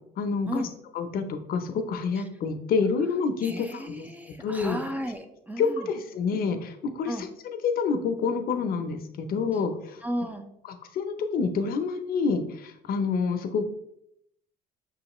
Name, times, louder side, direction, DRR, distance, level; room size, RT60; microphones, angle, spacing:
voice 1, 0.2-0.7 0.9-4.1 4.4-4.8 5.6-10.0 10.9-13.8, left 5 dB, 60° left, 7 dB, 0.6 m, -28 dB
voice 2, 3.4-5.9 7.1-7.3 10.0-10.5, equal, 10° right, 6 dB, 0.4 m, -34 dB
5.8 x 3.1 x 2.9 m, 0.77 s
cardioid pair, 110°, 17 cm